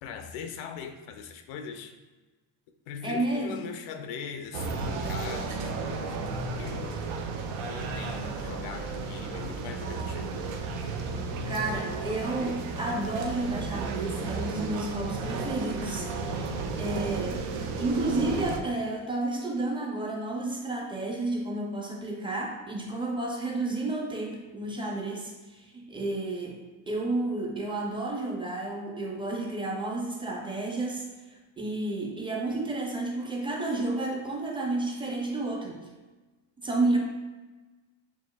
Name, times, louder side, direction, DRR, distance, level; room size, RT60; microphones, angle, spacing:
voice 1, 0.0-1.9 2.9-6.2 6.6-7.0 7.6-10.5, left 6 dB, 90° left, 6 dB, 0.6 m, -40 dB
voice 2, 3.0-3.6 11.5-17.5 17.8-26.6 26.9-31.1 31.6-35.9 36.6-37.0, right 2 dB, 10° right, -1 dB, 0.4 m, -31 dB
sound 1, 4.5-18.6, right 4 dB, 85° right, 0.7 m, -33 dB
6.8 x 2.6 x 2.2 m, 1.2 s
cardioid pair, 135°, 48 cm